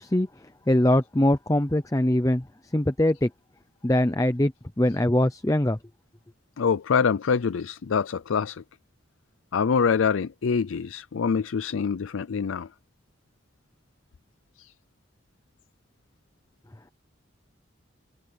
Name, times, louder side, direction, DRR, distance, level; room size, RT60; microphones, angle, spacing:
voice 1, 0.0-3.3 3.8-5.8, left 1 dB, 15° left, 0.6 m, -23 dB
voice 2, 6.6-8.6 9.5-12.7 14.6-14.7, left 6 dB, 85° left, 0.5 m, -25 dB
head